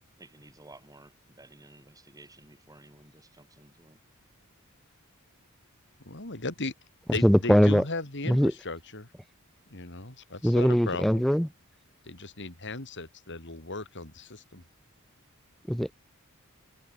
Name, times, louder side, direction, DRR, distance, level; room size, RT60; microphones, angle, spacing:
voice 1, 0.2-4.0, right 2 dB, 15° right, 4.0 m, -54 dB
voice 2, 6.0-6.7 7.1-9.1 9.7-11.3 12.0-14.6, left 2 dB, 55° left, 4.0 m, -36 dB
voice 3, 7.1-7.8 8.2-8.5 10.4-11.5 15.7-15.9, equal, ahead, 0.8 m, -21 dB
head